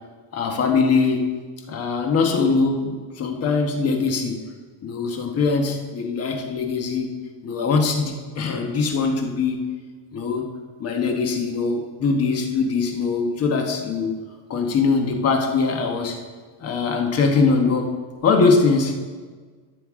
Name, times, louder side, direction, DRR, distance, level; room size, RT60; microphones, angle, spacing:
voice 1, 0.3-1.2 1.7-4.4 4.8-7.1 7.4-9.6 10.1-10.5 10.8-14.2 14.5-16.2 16.6-17.9 18.2-18.9, left 4 dB, 30° left, 3 dB, 1.2 m, -22 dB
13.5 x 6.9 x 3.7 m, 1.5 s
cardioid pair, 155°, 47 cm